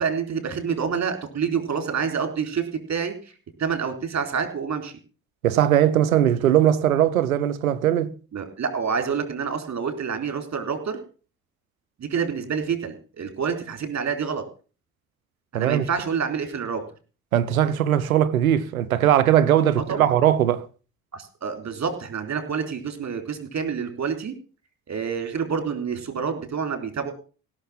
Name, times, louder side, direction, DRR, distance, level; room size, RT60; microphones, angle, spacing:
voice 1, 0.0-2.6 2.9-3.1 3.6-4.9 8.3-11.0 12.0-14.4 15.5-16.8 19.8-20.1 21.1-24.3 24.9-27.1, right 6 dB, 40° right, 3.9 m, -27 dB
voice 2, 5.4-8.1 15.5-15.8 17.3-20.7, right 11 dB, 90° right, 0.9 m, -20 dB
17.0 x 7.0 x 7.2 m
hypercardioid pair, 50°, 41 cm